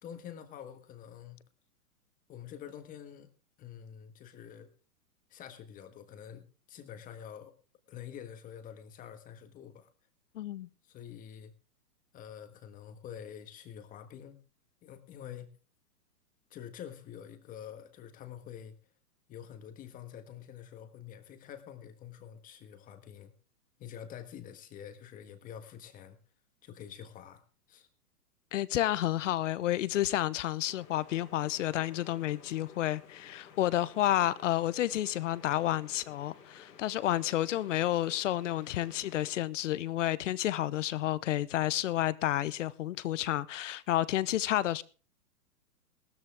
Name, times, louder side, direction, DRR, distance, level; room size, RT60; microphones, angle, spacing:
voice 1, 0.0-1.4 2.3-3.3 3.6-4.7 5.3-7.5 7.9-9.9 10.8-11.5 12.1-14.4 14.8-15.5 16.5-18.8 19.3-23.3 23.8-26.2 26.6-27.4 27.7-27.9, left 9 dB, 15° left, 1.5 m, -47 dB
voice 2, 10.3-10.7 28.5-44.8, left 13 dB, 50° left, 0.9 m, -30 dB
sound 1, 30.7-39.4, left 7 dB, 80° left, 3.5 m, -55 dB
17.0 x 13.0 x 3.5 m
hypercardioid pair, 150°, 48 cm